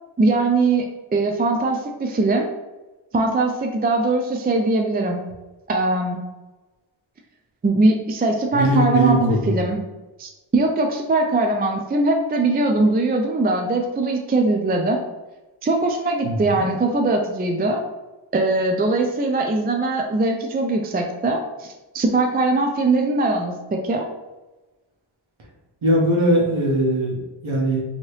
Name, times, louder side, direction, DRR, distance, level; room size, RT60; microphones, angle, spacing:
voice 1, 0.2-2.5 3.1-5.2 5.7-6.2 7.6-9.8 10.2-15.0 15.6-17.8 18.3-24.1, right 2 dB, 25° right, 2 dB, 0.3 m, -21 dB
voice 2, 8.5-9.6 16.2-16.7 25.8-27.8, right 1 dB, 85° right, -1 dB, 1.0 m, -20 dB
2.8 x 2.8 x 3.1 m, 1.1 s
wide cardioid pair, 55°, 47 cm